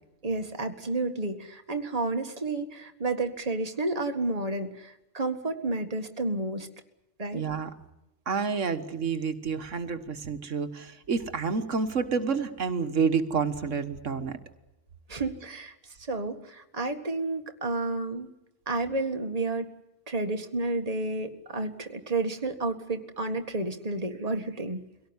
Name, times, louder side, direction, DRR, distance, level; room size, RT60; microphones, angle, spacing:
voice 1, 0.2-6.7 7.2-7.4 15.1-15.7 16.1-18.3 18.7-19.7 20.1-24.8, right 2 dB, 30° right, 6 dB, 1.9 m, -31 dB
voice 2, 7.3-7.7 8.3-14.4, right 5 dB, 85° right, 9 dB, 1.8 m, -29 dB
24.0 x 17.5 x 9.8 m, 0.93 s
omnidirectional pair, 1.2 m